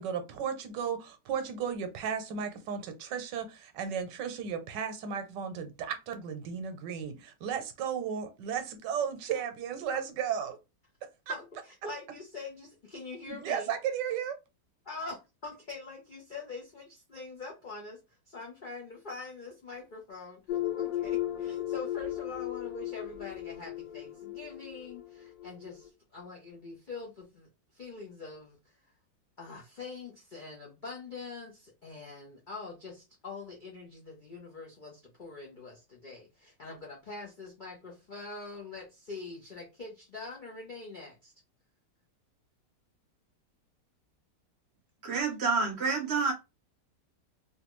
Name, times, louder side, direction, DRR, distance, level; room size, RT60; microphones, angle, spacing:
voice 1, 0.0-10.6 11.3-11.4 13.3-14.4, right 7 dB, 80° right, 1.3 m, -34 dB
voice 2, 11.3-13.7 14.8-18.0 18.3-28.6 29.4-41.3, left 3 dB, 85° left, 0.4 m, -44 dB
sound 1, 20.5-25.9, left 13 dB, 70° left, 1.3 m, -36 dB
voice 3, 45.0-46.3, right 4 dB, 65° right, 0.6 m, -28 dB
3.1 x 2.3 x 2.9 m
omnidirectional pair, 1.9 m